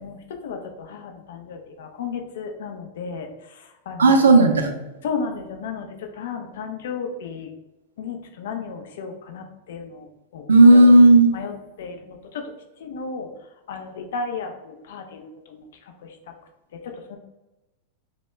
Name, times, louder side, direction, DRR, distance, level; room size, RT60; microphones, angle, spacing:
voice 1, 0.0-3.3 3.9-4.1 5.0-7.5 8.0-10.1 10.3-10.8 11.3-11.5 11.8-12.4 12.8-13.3 13.7-15.6 16.7-17.2, left 5 dB, 70° left, 4 dB, 0.3 m, -33 dB
voice 2, 4.0-4.8 10.5-11.3, right 2 dB, 85° right, 4 dB, 0.3 m, -12 dB
2.1 x 2.0 x 3.1 m, 0.99 s
hypercardioid pair, 95°, 0 cm